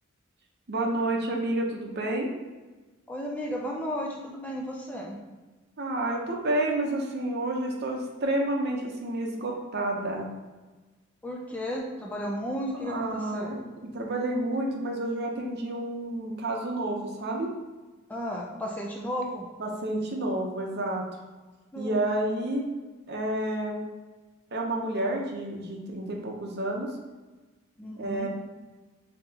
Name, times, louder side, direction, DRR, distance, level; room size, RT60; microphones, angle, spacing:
voice 1, 0.7-2.3 5.8-10.3 12.9-17.5 19.6-21.0 21.7-22.6 23.1-23.8 24.5-26.9 28.0-28.3, right 1 dB, 50° right, 1 dB, 0.7 m, -30 dB
voice 2, 3.1-5.2 11.2-13.5 18.1-19.5 21.7-22.0 27.8-28.3, equal, 5° left, -2 dB, 0.4 m, -34 dB
5.5 x 2.8 x 2.8 m, 1.2 s
head